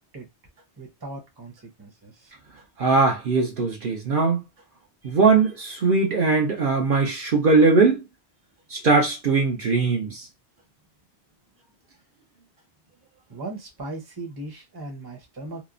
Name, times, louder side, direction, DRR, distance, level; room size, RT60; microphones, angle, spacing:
voice 1, 0.8-1.5 1.8-2.3 5.0-5.1 13.3-15.6, right 2 dB, 25° right, 0.8 m, -38 dB
voice 2, 2.8-4.4 5.0-8.0 8.7-10.3, right 4 dB, 55° right, 0.8 m, -20 dB
2.9 x 2.0 x 2.4 m
omnidirectional pair, 1.1 m